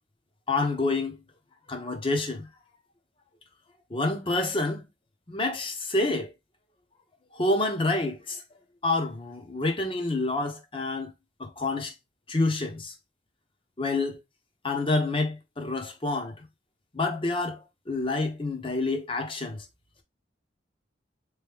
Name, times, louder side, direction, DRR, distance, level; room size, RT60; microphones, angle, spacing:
voice 1, 0.5-1.2 1.7-2.5 3.9-4.8 5.3-6.3 7.3-8.4 8.8-11.1 11.4-11.9 12.3-12.9 13.8-14.2 14.6-16.3 16.9-19.6, left 2 dB, 30° left, 0.9 m, -28 dB
3.9 x 3.2 x 3.4 m
head